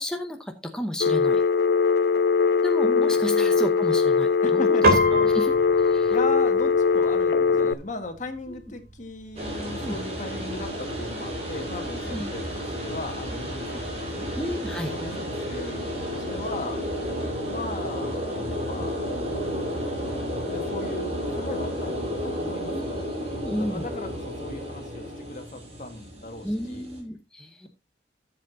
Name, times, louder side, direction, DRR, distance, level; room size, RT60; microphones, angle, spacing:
voice 1, 0.0-1.4 2.6-4.8 5.1-5.5 5.9-6.1 7.5-7.6 8.5-8.6 9.8-10.0 12.1-12.3 14.4-14.9 22.7-23.9 26.4-27.7, left 1 dB, 5° left, 3 dB, 0.8 m, -32 dB
Telephone, 1.0-7.7, left 5 dB, 60° left, 0.4 m, -21 dB
voice 2, 2.8-3.6 4.4-5.4 6.1-14.3 14.8-16.8 17.5-19.1 19.9-23.1 23.5-26.9, left 2 dB, 45° left, 6 dB, 1.7 m, -37 dB
Piano, 4.8-14.4, equal, 55° right, 3.3 m, -32 dB
sound 1, 9.4-27.0, equal, 40° right, 4.3 m, -32 dB
13.5 x 7.7 x 2.7 m, 0.25 s
head